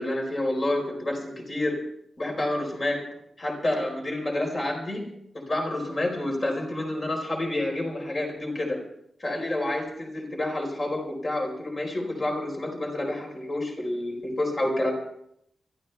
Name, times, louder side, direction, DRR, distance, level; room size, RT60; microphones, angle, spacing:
voice 1, 0.0-1.8 2.2-3.0 3.4-5.0 5.3-8.8 9.2-14.9, left 1 dB, 30° left, 1 dB, 4.4 m, -29 dB
24.5 x 14.0 x 3.5 m, 0.73 s
wide cardioid pair, 180°, 0 cm